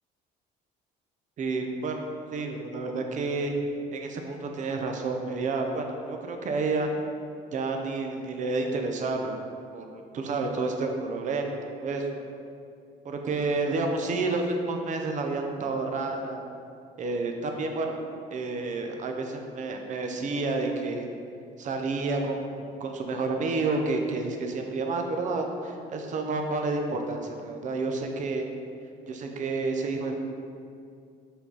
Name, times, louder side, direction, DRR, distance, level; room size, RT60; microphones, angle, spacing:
voice 1, 1.4-2.1 2.3-3.5 3.9-6.9 7.5-9.4 9.7-12.2 13.0-16.4 17.0-18.0 18.3-21.1 21.6-28.4 29.1-30.2, right 3 dB, 45° right, 3 dB, 0.7 m, -30 dB
5.7 x 4.1 x 4.0 m, 2.4 s
cardioid pair, 110°, 17 cm